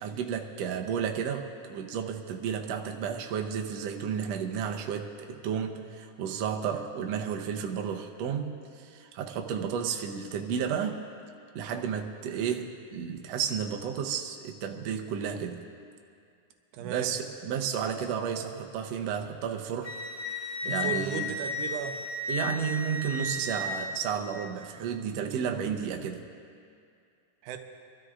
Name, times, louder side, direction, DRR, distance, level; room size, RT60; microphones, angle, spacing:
voice 1, 0.0-11.0 11.5-15.6 16.8-20.0 20.6-21.3 22.3-26.2, right 7 dB, 70° right, 3 dB, 1.8 m, -32 dB
voice 2, 16.7-17.1 20.6-22.0 27.4-27.6, right 9 dB, 90° right, 4 dB, 2.3 m, -36 dB
Wind instrument woodwind instrument, 19.8-23.7, left 3 dB, 5° right, 3.3 m, -34 dB
27.5 x 13.0 x 2.5 m, 2.4 s
omnidirectional pair, 3.5 m